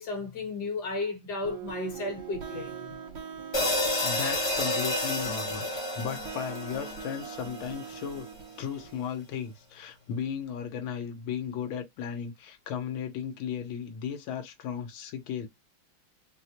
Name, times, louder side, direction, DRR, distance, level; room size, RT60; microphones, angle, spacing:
voice 1, 0.0-2.7, left 3 dB, 55° left, 1.7 m, -33 dB
sound 1, 1.4-9.0, right 7 dB, 70° right, 1.6 m, -42 dB
sound 2, 3.5-7.9, left 2 dB, 25° left, 0.6 m, -30 dB
voice 2, 4.0-5.7 5.9-8.3 8.6-15.5, left 8 dB, 85° left, 1.6 m, -35 dB
4.5 x 2.1 x 2.8 m
omnidirectional pair, 2.2 m